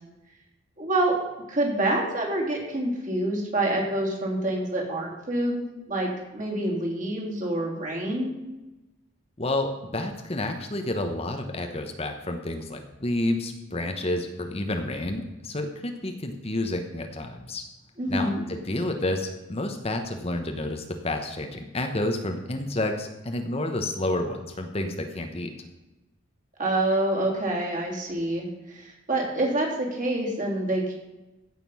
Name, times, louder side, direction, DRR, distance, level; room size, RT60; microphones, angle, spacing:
voice 1, 0.8-1.2 1.5-8.3 18.0-18.4 26.6-30.9, right 1 dB, 40° right, -1 dB, 3.3 m, -27 dB
voice 2, 9.4-17.6 18.1-25.5, left 1 dB, 30° left, 5 dB, 1.0 m, -30 dB
15.5 x 6.8 x 5.5 m, 1.1 s
head